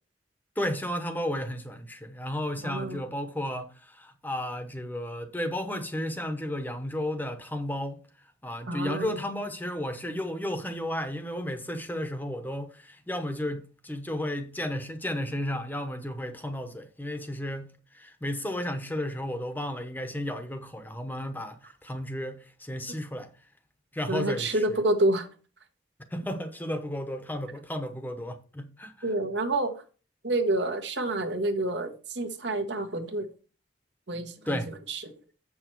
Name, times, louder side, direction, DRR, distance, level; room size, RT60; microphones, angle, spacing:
voice 1, 0.6-8.0 8.4-23.3 23.9-24.6 26.1-28.9 34.5-34.7, left 1 dB, 10° left, 0.9 m, -33 dB
voice 2, 2.6-3.0 8.7-9.2 24.1-25.3 29.0-29.8 30.2-33.3 34.1-35.1, right 2 dB, 70° right, 1.3 m, -28 dB
7.6 x 6.1 x 4.6 m
head